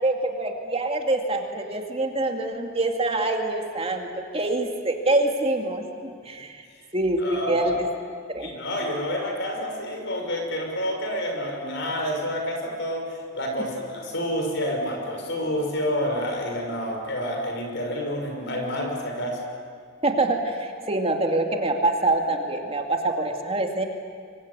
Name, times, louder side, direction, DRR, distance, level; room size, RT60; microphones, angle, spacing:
voice 1, 0.0-4.1 4.3-6.6 6.9-7.2 7.5-7.8 8.3-8.5 20.0-23.8, right 2 dB, 30° right, 3 dB, 2.4 m, -25 dB
voice 2, 7.2-7.7 8.4-19.4, equal, 60° left, 3 dB, 6.0 m, -29 dB
25.0 x 24.5 x 9.7 m, 2.2 s
head